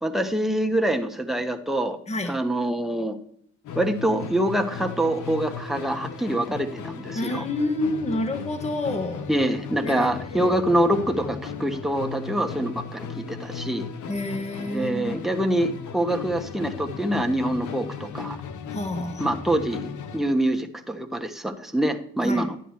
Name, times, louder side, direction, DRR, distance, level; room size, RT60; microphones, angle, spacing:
voice 1, 0.0-2.0 2.3-3.2 3.7-7.4 9.3-13.9 14.7-18.4 19.2-22.6, right 1 dB, ahead, 4 dB, 1.2 m, -25 dB
voice 2, 2.1-2.4 7.1-9.3 9.8-10.6 14.1-15.2 18.7-19.3 22.2-22.5, left 2 dB, 20° left, 6 dB, 1.3 m, -29 dB
Musical instrument, 3.6-20.3, left 6 dB, 75° left, 1.1 m, -36 dB
12.0 x 10.0 x 3.2 m, 0.64 s
cardioid pair, 90°, 30 cm